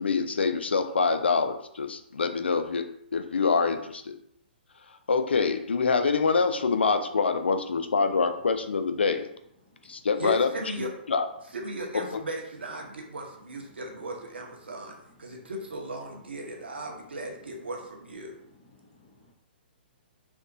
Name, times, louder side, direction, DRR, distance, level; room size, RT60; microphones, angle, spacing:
voice 1, 0.0-2.9 3.1-4.1 5.1-9.3 9.9-10.5 11.1-11.3 12.1-12.2, left 4 dB, 85° left, 8 dB, 0.3 m, -25 dB
voice 2, 10.2-10.9 11.5-18.4, right 1 dB, 80° right, 0 dB, 0.8 m, -37 dB
voice 3, 18.7-19.3, left 2 dB, 45° left, -4 dB, 0.8 m, -59 dB
3.4 x 2.5 x 2.6 m, 0.72 s
hypercardioid pair, 125°, 6 cm